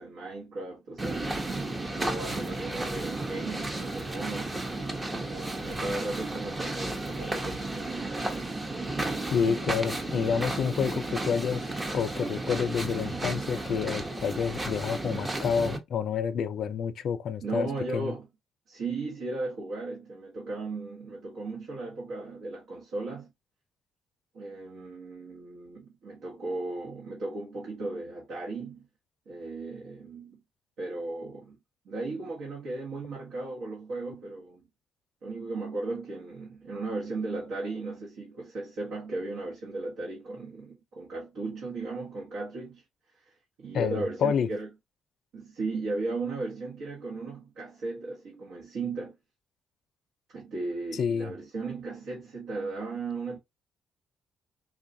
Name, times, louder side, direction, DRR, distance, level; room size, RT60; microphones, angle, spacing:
voice 1, 0.0-1.4 1.9-4.6 5.2-8.0 17.4-18.3 18.7-23.3 24.3-28.9 29.3-30.4 30.8-31.6 31.8-34.6 35.2-42.8 43.1-44.7 45.3-49.2 50.3-53.4, right 3 dB, 75° right, 1.2 m, -36 dB
sound 1, 1.0-15.8, right 2 dB, 25° right, 0.9 m, -33 dB
voice 2, 9.3-11.6 11.9-18.1 43.7-44.5 50.9-51.3, left 7 dB, 65° left, 0.4 m, -29 dB
3.7 x 2.3 x 2.6 m
cardioid pair, 90°, 0 cm